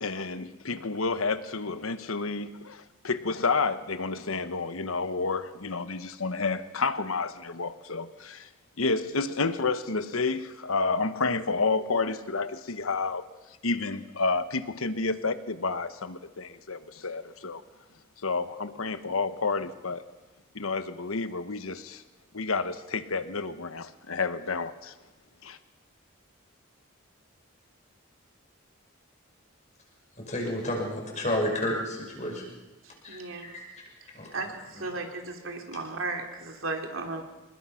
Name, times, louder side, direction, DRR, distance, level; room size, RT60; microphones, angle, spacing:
voice 1, 0.0-8.5 8.8-13.2 13.6-17.6 18.2-20.0 20.5-22.0 22.3-24.9 25.4-25.6, left 4 dB, 90° left, 11 dB, 1.2 m, -30 dB
voice 2, 30.2-32.4 33.0-33.6 34.1-34.3 34.8-35.0, left 1 dB, 35° left, 0 dB, 5.8 m, -31 dB
voice 3, 32.8-33.5 34.3-37.2, right 3 dB, 75° right, 3 dB, 3.0 m, -35 dB
26.5 x 20.5 x 5.8 m, 1.1 s
head